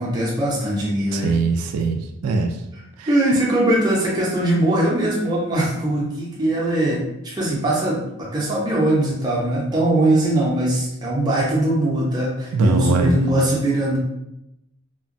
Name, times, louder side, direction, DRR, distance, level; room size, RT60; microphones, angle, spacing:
voice 1, 0.0-1.3 3.1-14.0, right 1 dB, 20° right, -5 dB, 0.6 m, -21 dB
voice 2, 1.1-2.5 3.0-3.1 12.5-13.2, right 3 dB, 85° right, 10 dB, 0.3 m, -21 dB
2.8 x 2.2 x 2.6 m, 0.86 s
head